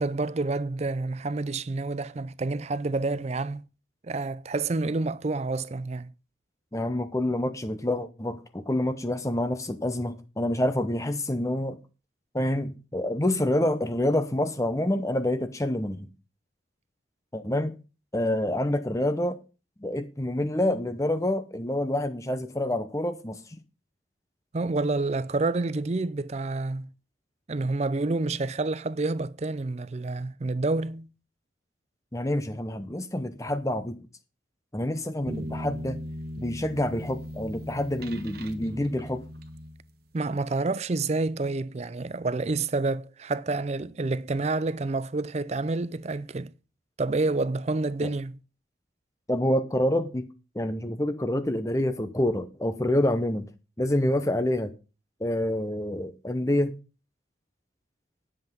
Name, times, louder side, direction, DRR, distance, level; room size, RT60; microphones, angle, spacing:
voice 1, 0.0-3.7 4.0-6.1 24.5-26.9 27.5-31.1 40.1-46.5 47.0-48.4, right 3 dB, 35° right, 0.4 m, -28 dB
voice 2, 6.7-11.8 12.3-16.1 17.3-17.7 18.1-19.4 19.8-23.6 32.1-34.0 34.7-36.0 36.4-39.2 48.0-48.1 49.3-50.2 50.5-53.4 53.8-54.7 55.2-56.7, left 1 dB, 15° left, 0.7 m, -27 dB
sound 1, 35.3-40.2, equal, 50° right, 1.3 m, -38 dB
10.5 x 7.6 x 5.3 m
head